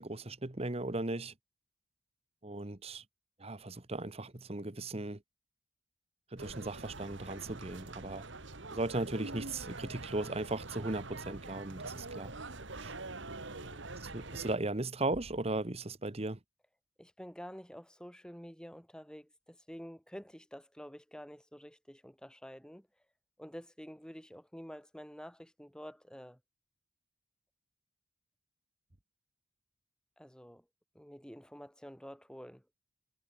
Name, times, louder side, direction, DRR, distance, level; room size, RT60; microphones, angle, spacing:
voice 1, 0.0-1.3 2.4-3.0 3.4-5.2 6.3-8.2 8.7-12.3 12.8-12.9 14.0-16.4, right 2 dB, 30° right, 1.2 m, -37 dB
sound 1, 6.4-14.6, right 2 dB, 60° right, 2.1 m, -44 dB
voice 2, 13.5-13.8 17.0-22.9 23.4-26.4 30.2-30.6 30.9-32.6, equal, 5° left, 6.4 m, -49 dB
head